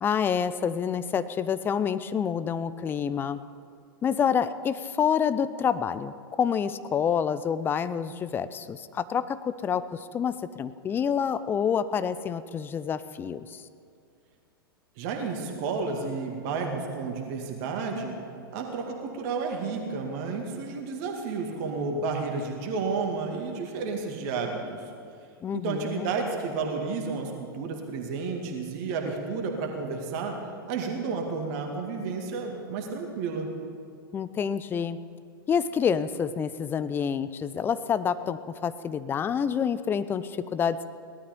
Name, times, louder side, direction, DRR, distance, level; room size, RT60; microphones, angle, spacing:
voice 1, 0.0-3.4 4.0-13.6 25.4-26.1 34.1-35.0 35.5-40.8, left 7 dB, 15° left, 13 dB, 0.5 m, -28 dB
voice 2, 15.0-18.2 18.5-24.8 25.5-30.4 30.7-33.5, right 4 dB, 40° right, 2 dB, 2.1 m, -31 dB
18.0 x 12.5 x 5.3 m, 2.3 s
figure-of-eight pair, 100°, 12 cm